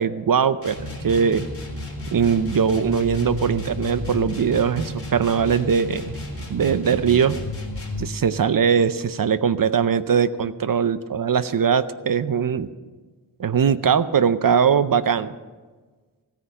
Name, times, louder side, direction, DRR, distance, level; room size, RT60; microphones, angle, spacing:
voice 1, 0.0-1.5 2.1-6.1 6.5-7.4 8.0-12.7 13.4-15.3, right 7 dB, 50° right, 14 dB, 0.6 m, -21 dB
sound 1, 0.6-8.1, left 1 dB, 30° left, 3.8 m, -32 dB
15.5 x 9.8 x 6.6 m, 1.4 s
wide cardioid pair, 95°, 43 cm